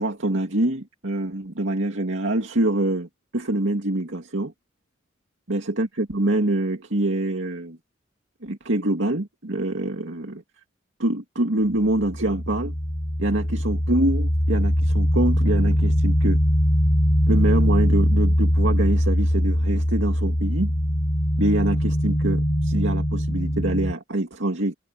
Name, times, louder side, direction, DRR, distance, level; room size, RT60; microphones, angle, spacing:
voice 1, 0.0-4.5 5.5-7.8 8.4-10.4 11.0-12.7 13.2-16.4 17.3-20.7 21.4-24.7, right 1 dB, 85° right, 2.3 m, -25 dB
sound 1, 11.8-23.9, equal, 40° left, 3.4 m, -21 dB
head